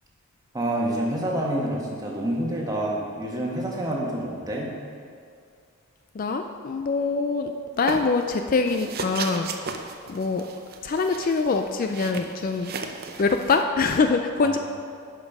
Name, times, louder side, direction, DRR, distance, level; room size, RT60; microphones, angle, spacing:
voice 1, 0.5-4.7 14.4-14.6, right 1 dB, 15° right, -2 dB, 1.2 m, -27 dB
voice 2, 6.1-9.5 10.1-10.4 10.8-12.7 13.2-14.6, left 4 dB, 40° left, 6 dB, 0.3 m, -24 dB
sound 1, 7.9-8.3 8.7-13.6, right 4 dB, 45° right, 0.6 m, -35 dB
10.5 x 5.2 x 5.4 m, 2.3 s
head